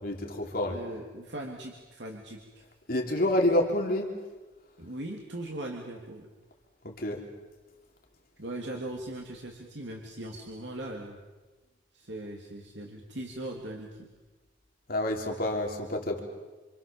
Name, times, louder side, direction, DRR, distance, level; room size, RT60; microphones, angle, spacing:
voice 1, 0.0-0.8 2.9-4.2 6.8-7.2 14.9-16.2, left 1 dB, 50° left, 1 dB, 3.5 m, -28 dB
voice 2, 0.6-2.6 4.8-6.3 8.4-11.2 11.9-14.1, right 1 dB, 65° right, 0 dB, 3.1 m, -39 dB
28.0 x 27.5 x 7.3 m, 1.2 s
head